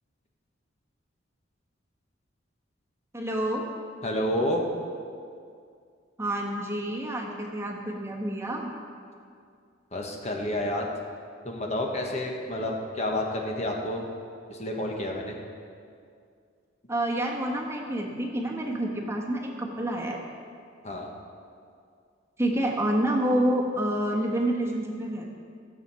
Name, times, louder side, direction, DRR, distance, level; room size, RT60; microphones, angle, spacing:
voice 1, 3.1-3.7 6.2-8.7 16.9-20.2 22.4-25.3, right 1 dB, 15° right, -1 dB, 1.3 m, -28 dB
voice 2, 4.0-4.6 9.9-10.9 11.4-14.0 14.5-15.3 20.8-21.1, left 1 dB, 35° left, 0 dB, 1.3 m, -29 dB
15.0 x 7.4 x 5.6 m, 2.3 s
head